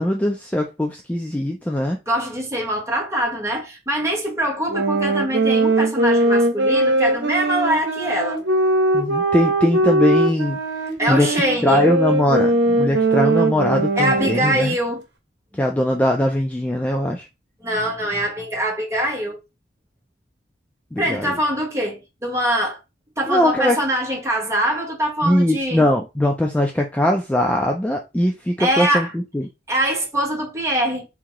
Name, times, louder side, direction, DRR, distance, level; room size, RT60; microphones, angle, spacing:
voice 1, 0.0-2.0 8.9-10.6 11.1-11.3 11.6-14.8 15.6-17.3 20.9-21.3 23.3-23.8 25.2-29.5, left 1 dB, 10° left, 0.3 m, -20 dB
voice 2, 2.1-8.4 11.0-11.9 12.4-12.5 14.0-15.0 17.6-19.4 21.0-22.8 23.2-25.9 28.6-29.1 29.7-31.1, right 1 dB, 15° right, 1.1 m, -23 dB
sound 1, 4.7-14.7, right 2 dB, 80° right, 0.9 m, -20 dB
3.6 x 2.7 x 2.9 m
head